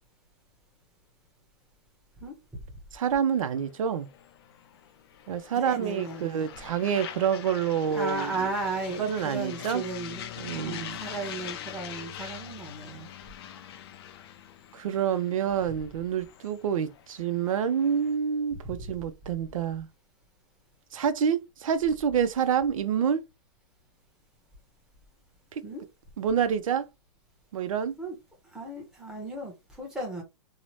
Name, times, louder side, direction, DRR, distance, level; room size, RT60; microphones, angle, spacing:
voice 1, 2.9-4.1 5.3-8.5 9.0-9.8 10.4-11.0 12.2-12.3 14.7-19.9 20.9-23.2 26.2-26.9 27.5-28.0, right 8 dB, 90° right, 0.5 m, -27 dB
sound 1, 3.3-18.2, left 10 dB, 50° left, 0.4 m, -44 dB
voice 2, 5.5-6.5 7.9-13.1 18.6-18.7 25.6-25.8 28.0-28.2 28.4-30.2, right 3 dB, 5° right, 0.8 m, -35 dB
2.7 x 2.0 x 3.0 m
hypercardioid pair, 160°, 17 cm